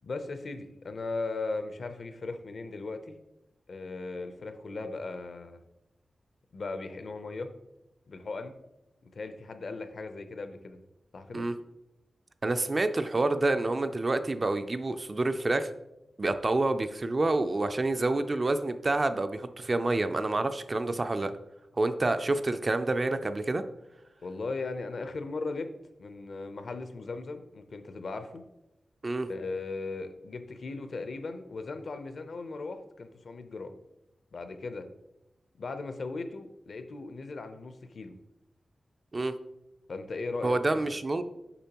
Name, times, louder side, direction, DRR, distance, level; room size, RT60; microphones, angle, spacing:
voice 1, 0.0-3.1 3.7-5.6 6.5-7.5 8.1-8.5 9.0-10.8 11.1-11.4 24.2-25.7 26.0-28.4 29.3-33.7 34.3-34.9 35.6-38.2 39.9-40.8, left 3 dB, 60° left, 8 dB, 0.5 m, -37 dB
voice 2, 12.4-15.7 16.2-21.3 21.8-23.6 29.0-29.3 39.1-39.4 40.4-41.2, right 2 dB, 35° right, 9 dB, 0.3 m, -28 dB
6.8 x 5.2 x 2.9 m, 0.90 s
wide cardioid pair, 130°, 0 cm